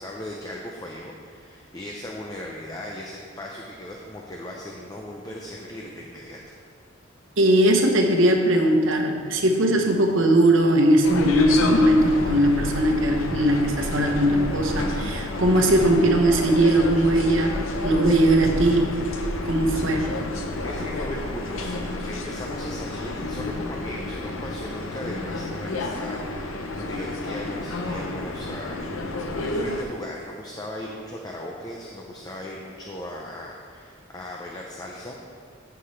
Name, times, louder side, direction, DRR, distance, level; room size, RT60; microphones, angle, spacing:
voice 1, 0.0-6.6 20.6-35.1, left 1 dB, 20° left, -1 dB, 0.6 m, -37 dB
voice 2, 7.4-17.6 17.8-18.9 19.4-20.1, right 1 dB, 75° right, 2 dB, 1.1 m, -19 dB
sound 1, 11.0-29.8, left 2 dB, 85° left, 0.8 m, -30 dB
15.0 x 5.8 x 3.3 m, 2.1 s
head